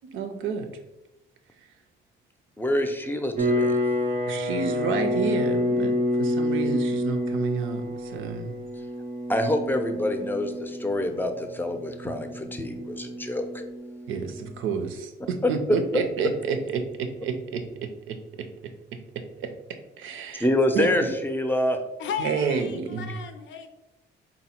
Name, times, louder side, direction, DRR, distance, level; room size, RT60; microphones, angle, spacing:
voice 1, 0.1-0.7 4.3-8.5 14.1-18.5 18.9-19.5 20.0-20.5 20.7-21.1 22.2-23.1, right 5 dB, 90° right, 6 dB, 0.5 m, -30 dB
voice 2, 2.6-3.8 9.3-13.5 15.4-15.5 20.4-21.8, left 1 dB, 10° left, 5 dB, 0.5 m, -26 dB
sound 1, 3.4-14.4, left 1 dB, 40° right, 0.5 m, -28 dB
voice 3, 22.0-23.7, left 7 dB, 70° left, 8 dB, 0.5 m, -34 dB
4.0 x 2.1 x 4.2 m, 0.95 s
cardioid pair, 90°, 20 cm